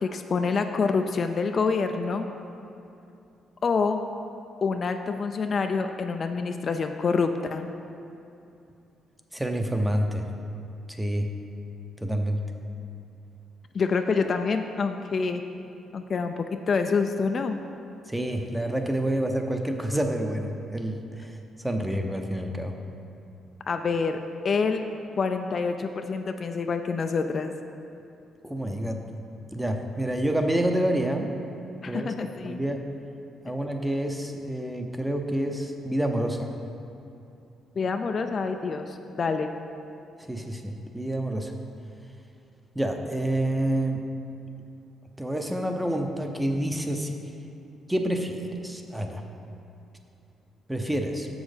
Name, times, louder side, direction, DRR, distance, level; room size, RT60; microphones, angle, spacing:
voice 1, 0.0-2.3 3.6-4.0 4.6-7.7 13.7-15.4 15.9-17.6 23.7-24.2 24.4-24.9 25.2-27.5 31.8-32.6 37.8-39.5, left 4 dB, 45° left, 6 dB, 0.4 m, -27 dB
voice 2, 9.3-10.3 10.9-11.3 12.0-12.4 18.1-21.4 21.6-22.7 28.4-29.0 29.5-31.3 31.8-32.1 32.4-32.8 33.4-36.5 40.2-41.5 42.7-44.0 45.2-47.2 47.9-49.2 50.7-51.3, right 1 dB, 5° right, 4 dB, 0.7 m, -28 dB
7.0 x 6.3 x 5.1 m, 2.7 s
cardioid pair, 90°, 0 cm